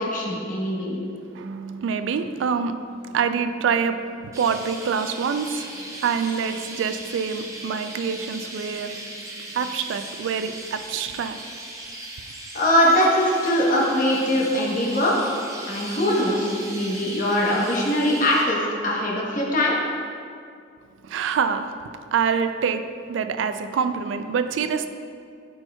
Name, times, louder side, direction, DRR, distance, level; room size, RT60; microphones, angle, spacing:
voice 1, 0.0-1.0 12.5-15.2 15.7-19.8, equal, 45° left, -3 dB, 0.9 m, -22 dB
voice 2, 1.1-9.1 9.4-11.4 21.0-24.9, right 6 dB, 75° right, 10 dB, 0.3 m, -26 dB
Chirp tweet, 4.3-18.4, right 1 dB, 15° right, 0.6 m, -38 dB
9.7 x 4.4 x 2.2 m, 2.3 s
head